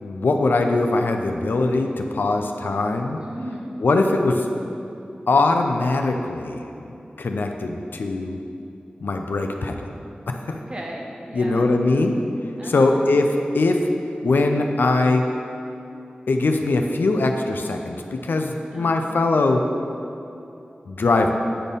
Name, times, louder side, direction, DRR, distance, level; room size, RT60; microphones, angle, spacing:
voice 1, 0.0-3.2 3.8-4.5 5.3-6.7 7.2-8.4 9.0-9.8 10.3-10.6 11.3-12.2 12.6-13.9 14.2-15.3 16.3-19.7 20.9-21.3, left 2 dB, 90° left, 4 dB, 0.6 m, -21 dB
voice 2, 3.2-3.7 10.5-11.7 12.6-13.0 18.7-19.2, right 1 dB, 30° right, -2 dB, 1.2 m, -36 dB
8.9 x 4.3 x 5.2 m, 2.8 s
wide cardioid pair, 60°, 3 cm